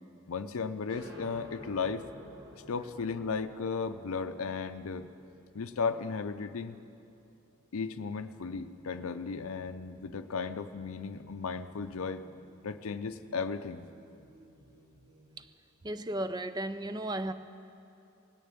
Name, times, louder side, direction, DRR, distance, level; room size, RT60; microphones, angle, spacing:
voice 1, 0.3-2.0 2.7-5.1 5.5-6.8 7.7-12.2 12.6-13.9, left 5 dB, 75° left, 9 dB, 0.5 m, -35 dB
sound 1, 0.9-8.2, equal, 55° right, 1.5 m, -53 dB
sound 2, 7.9-15.5, right 1 dB, 85° right, 1.3 m, -61 dB
voice 2, 15.8-17.3, right 1 dB, 20° right, 12 dB, 0.4 m, -34 dB
18.0 x 6.8 x 8.9 m, 2.7 s
head